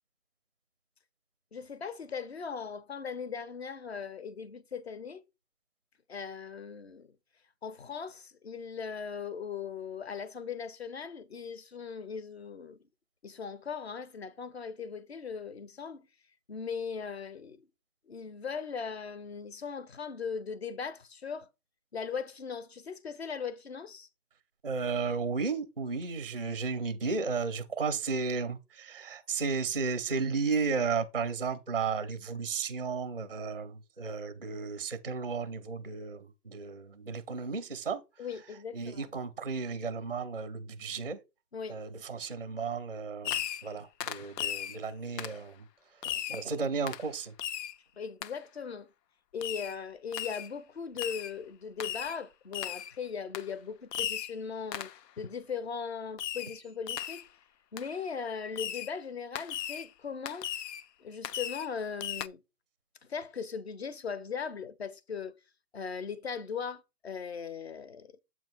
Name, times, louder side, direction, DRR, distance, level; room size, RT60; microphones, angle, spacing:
voice 1, 1.5-5.2 6.1-7.1 7.6-12.8 13.2-16.0 16.5-17.7 18.1-21.5 21.9-24.1 38.2-39.1 41.5-41.8 48.0-48.9 49.3-54.9 55.2-57.3 57.7-60.5 61.0-62.4 63.1-65.4 65.7-68.2, left 6 dB, 45° left, 0.6 m, -39 dB
voice 2, 24.6-38.0 38.7-41.2 41.7-45.7 46.0-47.3, right 4 dB, 40° right, 0.4 m, -34 dB
Fireworks, 43.2-43.7 44.0-44.8 45.2-45.4 46.0-46.5 46.9-47.1 47.4-47.8 48.2-48.3 49.4-49.8 50.1-50.5 51.0-51.3 51.8-52.2 52.5-52.9 53.3-53.5 53.9-54.4 54.7-55.0 56.2-56.6 56.9-57.3 57.8-57.9 58.6-58.9 59.4-59.9 60.3-60.8 61.2-61.7 62.0-62.3, left 11 dB, 90° left, 0.6 m, -36 dB
7.4 x 2.8 x 5.8 m
hypercardioid pair, 175°, 48 cm